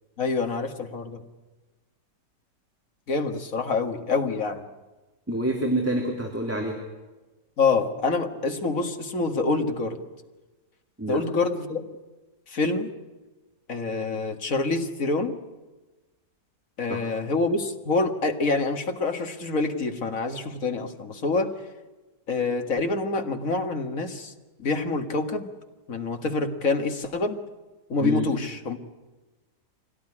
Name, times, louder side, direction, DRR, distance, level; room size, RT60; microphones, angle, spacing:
voice 1, 0.2-1.2 3.1-4.7 7.6-10.0 11.1-11.9 12.5-12.9 13.7-15.4 16.8-21.5 22.3-24.3 24.6-25.5 25.9-27.4 27.9-28.8, left 3 dB, 50° left, 5 dB, 2.1 m, -26 dB
voice 2, 5.3-6.7 11.0-11.2 16.9-17.0 28.0-28.3, right 1 dB, 10° right, 0 dB, 3.1 m, -27 dB
24.5 x 17.5 x 9.9 m, 1.2 s
omnidirectional pair, 1.8 m